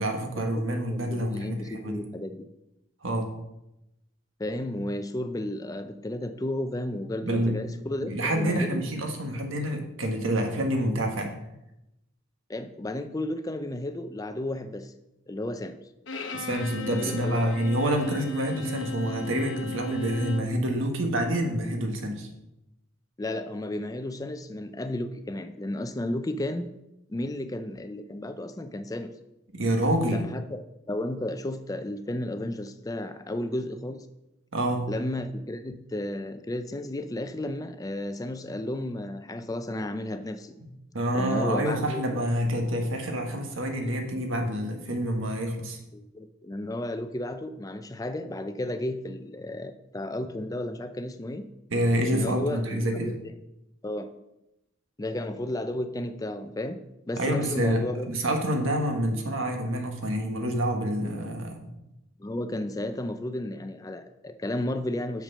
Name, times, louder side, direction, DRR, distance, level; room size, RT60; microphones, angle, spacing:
voice 1, 0.0-2.0 3.0-3.3 7.2-7.6 8.0-11.4 16.3-22.3 29.5-30.2 34.5-34.9 40.9-45.8 51.7-53.1 57.2-61.7, right 1 dB, 80° right, 4 dB, 1.4 m, -27 dB
voice 2, 0.9-2.5 4.4-8.8 12.5-14.9 15.3-15.7 17.0-17.6 23.2-26.7 27.1-29.1 30.1-34.1 34.9-40.5 41.1-42.0 45.9-51.5 52.1-53.1 53.8-54.1 55.0-56.8 57.1-58.1 62.2-65.2, left 1 dB, 15° left, 9 dB, 0.4 m, -33 dB
Bowed string instrument, 16.1-20.6, left 3 dB, 65° left, 0.9 m, -36 dB
6.7 x 6.0 x 5.6 m, 0.90 s
head